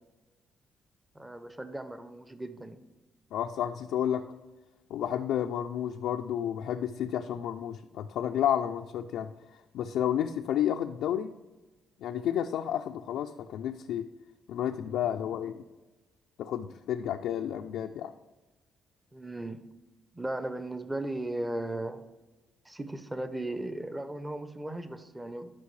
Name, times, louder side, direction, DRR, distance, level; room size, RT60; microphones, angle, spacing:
voice 1, 1.1-2.8 19.1-19.6 20.1-22.0 22.6-25.5, right 1 dB, 15° right, 10 dB, 0.7 m, -36 dB
voice 2, 3.3-4.2 4.9-9.3 9.7-11.3 12.0-14.1 14.5-15.6 16.4-18.1, left 10 dB, 85° left, 4 dB, 0.4 m, -31 dB
11.5 x 5.2 x 3.2 m, 1.2 s
cardioid pair, 90°, 0 cm